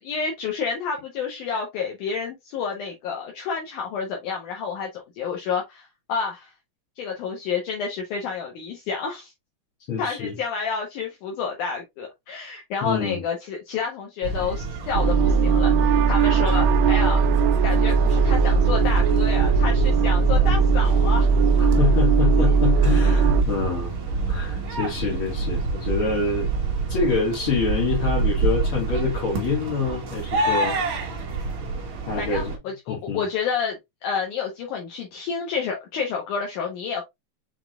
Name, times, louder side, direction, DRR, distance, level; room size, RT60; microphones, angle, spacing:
voice 1, 0.1-6.5 7.0-9.3 10.0-17.2 17.6-21.3 32.2-37.0, left 6 dB, 75° left, 2.3 m, -29 dB
voice 2, 9.9-10.4 12.8-13.2 21.6-24.0 24.3-26.5 26.9-30.8 32.1-32.5 32.9-33.2, left 5 dB, 50° left, 1.9 m, -26 dB
sound 1, 14.2-32.6, right 4 dB, 60° right, 1.3 m, -28 dB
sound 2, 14.9-23.4, right 5 dB, 85° right, 2.2 m, -19 dB
6.0 x 3.6 x 2.3 m
omnidirectional pair, 3.8 m